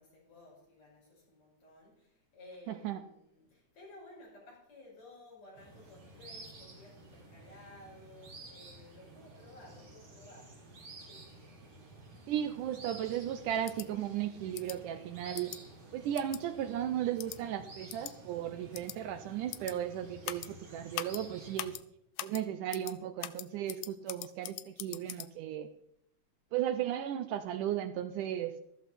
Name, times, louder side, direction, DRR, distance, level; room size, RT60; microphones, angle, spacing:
voice 1, 0.0-10.7 11.0-11.4 26.5-26.9, left 2 dB, 50° left, -4 dB, 6.9 m, -56 dB
voice 2, 2.7-3.0 12.3-15.5 15.9-21.8 22.2-25.7 26.5-28.6, right 11 dB, 75° right, 10 dB, 2.1 m, -35 dB
sound 1, 5.6-21.7, right 2 dB, 45° right, 3.4 m, -52 dB
sound 2, 13.7-13.9 14.5-14.8 15.4-15.6 16.2-16.4 17.2-17.4 17.9-18.1 18.7-19.0 19.5-19.7 20.2-20.5 20.9-21.2 21.6-21.8 22.2-22.4 22.7-22.9 23.2-25.3, left 15 dB, 80° left, 2.3 m, -41 dB
13.5 x 13.5 x 4.2 m, 0.73 s
omnidirectional pair, 3.9 m